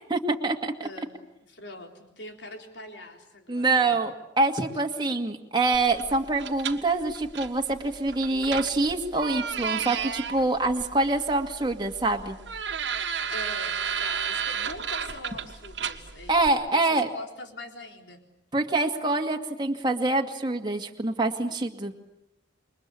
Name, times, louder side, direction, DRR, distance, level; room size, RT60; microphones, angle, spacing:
voice 1, 0.1-0.9 3.5-12.4 16.3-17.1 18.5-21.9, right 2 dB, 25° right, 3 dB, 2.1 m, -25 dB
voice 2, 0.8-1.2 1.5-4.0 13.3-18.2, left 2 dB, 70° left, 4 dB, 3.8 m, -43 dB
sound 1, 5.7-16.5, right 7 dB, 75° right, 1.6 m, -33 dB
28.5 x 23.0 x 8.6 m, 0.82 s
head